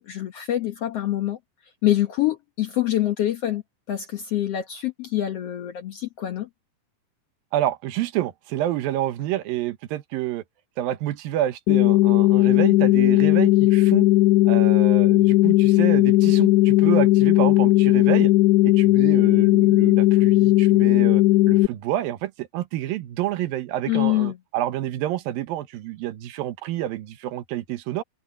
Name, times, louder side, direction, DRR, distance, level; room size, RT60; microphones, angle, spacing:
voice 1, 0.0-1.4 1.8-3.6 3.9-6.5 23.9-24.4, left 13 dB, 65° left, 1.6 m, -25 dB
voice 2, 7.5-10.4 10.8-14.1 14.5-18.3 18.6-28.0, right 13 dB, 90° right, 2.9 m, -28 dB
sound 1, 11.7-21.7, left 17 dB, 80° left, 1.6 m, -17 dB
open air
omnidirectional pair, 4.0 m